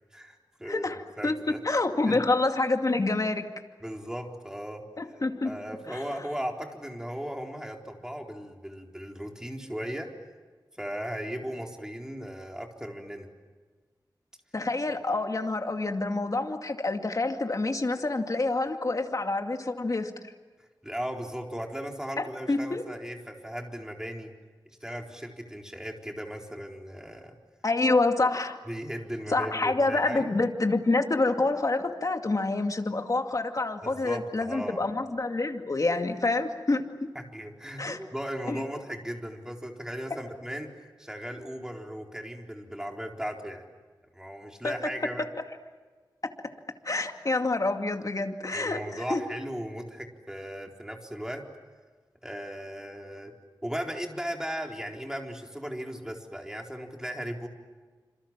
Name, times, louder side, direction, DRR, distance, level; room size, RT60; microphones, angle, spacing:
voice 1, 0.1-1.6 2.0-2.2 3.8-4.8 5.4-10.1 10.8-13.3 20.8-24.3 24.8-27.3 28.7-30.4 33.8-34.8 37.1-43.6 44.1-45.2 46.9-47.0 48.5-51.5 52.2-53.3 53.6-57.5, equal, 10° right, 2 dB, 4.1 m, -37 dB
voice 2, 0.6-3.5 5.0-5.5 5.9-6.0 14.5-20.1 22.2-22.8 27.6-28.6 29.3-36.8 37.8-38.0 38.5-38.6 44.6-44.7 46.8-49.2, left 2 dB, 50° left, 5 dB, 2.4 m, -27 dB
27.5 x 27.0 x 7.5 m, 1.4 s
wide cardioid pair, 85°, 8 cm